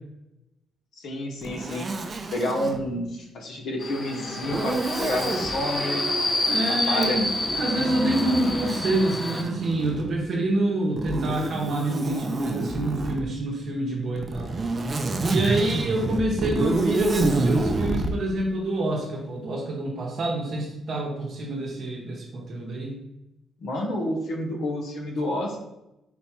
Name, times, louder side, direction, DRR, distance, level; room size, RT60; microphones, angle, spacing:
voice 1, 1.0-2.0 2.3-6.4 6.7-7.2 23.6-25.6, left 1 dB, 70° left, 1 dB, 0.8 m, -30 dB
Zipper (clothing), 1.4-2.8 4.4-5.5 6.9-10.2 11.0-13.2 14.2-18.1, right 2 dB, 35° right, 0.4 m, -28 dB
Subway metro underground, 3.8-9.4, left 2 dB, 20° left, 0.7 m, -28 dB
voice 2, 6.5-14.5 15.3-23.0, right 1 dB, 55° right, -2 dB, 0.8 m, -27 dB
4.2 x 2.2 x 4.2 m, 0.92 s
cardioid pair, 90°, 0 cm